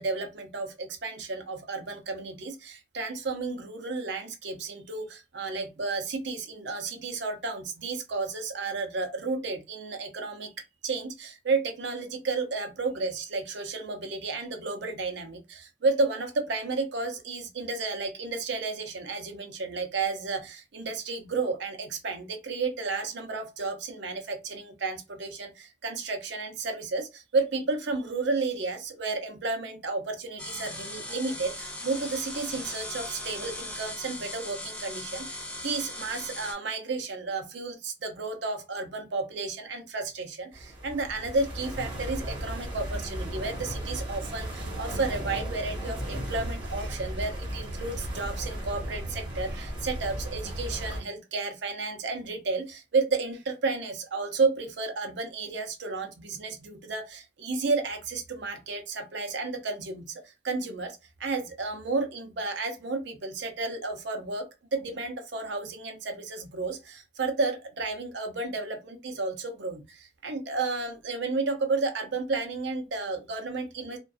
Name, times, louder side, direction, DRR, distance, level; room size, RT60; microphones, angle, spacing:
voice 1, 0.0-10.5 10.8-74.0, right 3 dB, 65° right, 0.6 m, -32 dB
sound 1, 30.4-36.5, left 1 dB, 5° left, 0.4 m, -38 dB
sound 2, 40.5-51.0, equal, 25° right, 1.2 m, -35 dB
2.4 x 2.3 x 2.3 m
head